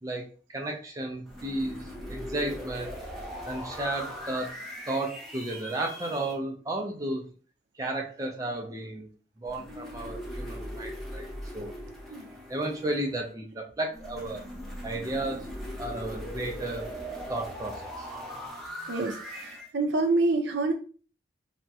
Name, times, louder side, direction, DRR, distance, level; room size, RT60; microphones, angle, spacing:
voice 1, 0.0-1.8 2.1-3.0 3.5-4.5 4.9-7.3 7.8-9.1 9.4-11.3 11.5-11.7 12.5-14.4 14.8-15.5 15.8-16.9 17.3-18.1, right 1 dB, 20° right, 1 dB, 0.4 m, -33 dB
sound 1, 1.3-6.3 9.4-13.2 13.9-19.7, equal, ahead, 0.8 m, -40 dB
voice 2, 18.9-20.7, right 2 dB, 75° right, 3 dB, 0.6 m, -27 dB
3.4 x 2.1 x 2.7 m, 0.38 s
head